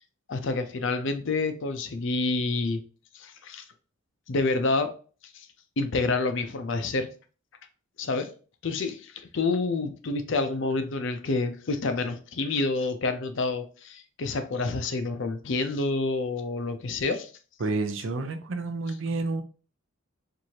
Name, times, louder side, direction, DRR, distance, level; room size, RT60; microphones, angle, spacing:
voice 1, 0.3-2.8 3.1-3.6 4.3-4.9 5.3-5.5 5.8-7.1 8.0-8.3 8.6-17.3, left 3 dB, 55° left, 0.5 m, -28 dB
voice 2, 17.6-19.4, right 3 dB, 60° right, 0.5 m, -29 dB
4.5 x 2.6 x 2.7 m
head